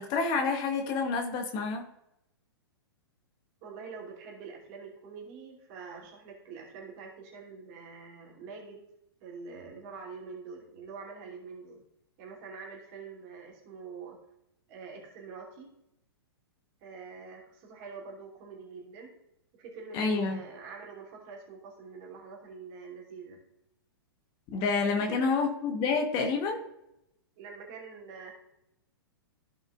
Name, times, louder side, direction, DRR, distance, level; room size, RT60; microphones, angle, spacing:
voice 1, 0.0-1.8 19.9-20.4 24.5-26.6, left 4 dB, 30° left, 4 dB, 1.2 m, -28 dB
voice 2, 3.6-8.8 9.2-11.8 12.2-14.2 14.7-15.7 16.8-19.2 19.5-23.4 25.0-25.5 27.4-28.3, right 5 dB, 40° right, -1 dB, 2.8 m, -45 dB
15.5 x 5.4 x 2.4 m, 0.82 s
figure-of-eight pair, 105°, 13 cm